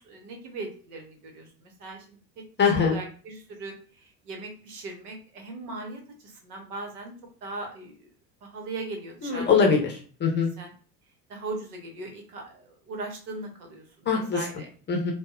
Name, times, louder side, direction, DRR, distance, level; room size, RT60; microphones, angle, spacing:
voice 1, 0.0-2.2 2.7-3.7 4.0-7.1 7.4-7.9 8.4-9.6 10.6-10.7 11.3-14.7, right 3 dB, 65° right, 2 dB, 1.0 m, -39 dB
voice 2, 2.6-3.0 9.2-10.5 14.1-14.4 14.9-15.1, left 5 dB, 20° left, 1 dB, 0.7 m, -22 dB
3.9 x 2.1 x 2.5 m, 0.40 s
figure-of-eight pair, 70°, 49 cm